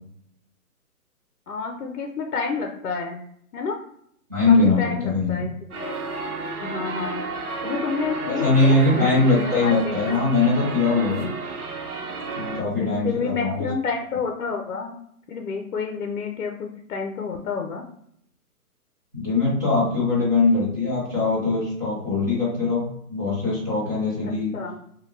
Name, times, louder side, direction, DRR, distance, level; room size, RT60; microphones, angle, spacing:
voice 1, 1.5-3.2 3.5-3.8 4.5-5.5 5.8-6.0 6.6-7.2 7.6-10.2 12.8-15.0 15.3-17.8 24.2-24.8, left 5 dB, 65° left, 3 dB, 0.6 m, -29 dB
voice 2, 4.3-5.5 8.3-11.3 12.4-13.7 19.1-24.5, left 3 dB, 15° right, -7 dB, 0.5 m, -21 dB
sound 1, 5.7-12.6, right 3 dB, 70° right, 0.9 m, -32 dB
3.4 x 2.2 x 2.6 m, 0.69 s
hypercardioid pair, 145°, 45 cm